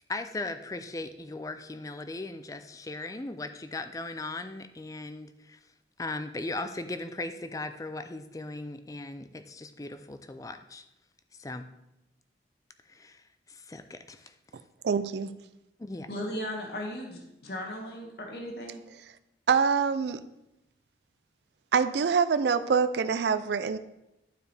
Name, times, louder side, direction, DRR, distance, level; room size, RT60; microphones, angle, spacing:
voice 1, 0.1-5.6 6.0-10.8 11.4-11.7 12.9-13.2 13.5-14.3 15.8-16.1, left 2 dB, 20° left, 10 dB, 0.4 m, -38 dB
voice 2, 14.8-15.3 19.5-20.2 21.7-23.8, right 6 dB, 70° right, 13 dB, 0.4 m, -25 dB
voice 3, 16.1-18.8, equal, 60° left, 1 dB, 1.2 m, -36 dB
11.5 x 4.7 x 3.3 m, 0.90 s
head